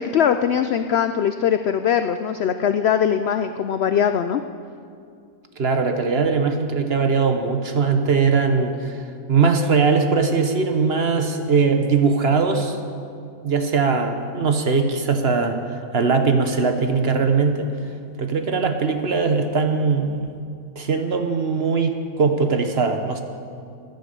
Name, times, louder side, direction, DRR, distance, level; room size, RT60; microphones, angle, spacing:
voice 1, 0.0-4.4, left 8 dB, 80° left, 9 dB, 0.5 m, -21 dB
voice 2, 5.6-8.9 9.3-12.8 13.4-15.6 15.9-17.7 18.2-20.3 20.8-23.2, right 5 dB, 45° right, 6 dB, 1.0 m, -20 dB
15.0 x 10.5 x 6.9 m, 2.4 s
omnidirectional pair, 1.6 m